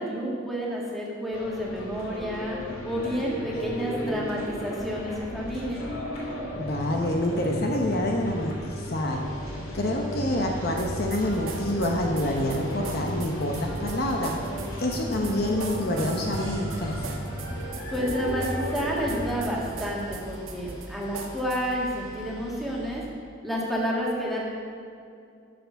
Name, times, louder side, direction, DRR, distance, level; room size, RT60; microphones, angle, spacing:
voice 1, 0.0-5.8 17.9-23.0 23.4-24.4, equal, ahead, -4 dB, 1.9 m, -30 dB
sound 1, 1.3-19.6, equal, 70° left, 2.7 m, -34 dB
voice 2, 6.5-9.2 9.7-14.3 14.8-17.1, left 1 dB, 45° left, 1 dB, 0.9 m, -27 dB
Boat Water vehicle, 9.2-23.0, right 1 dB, 20° left, 2.8 m, -45 dB
sound 2, 10.8-21.8, right 4 dB, 70° right, 1.0 m, -40 dB
12.5 x 6.9 x 5.8 m, 2.5 s
head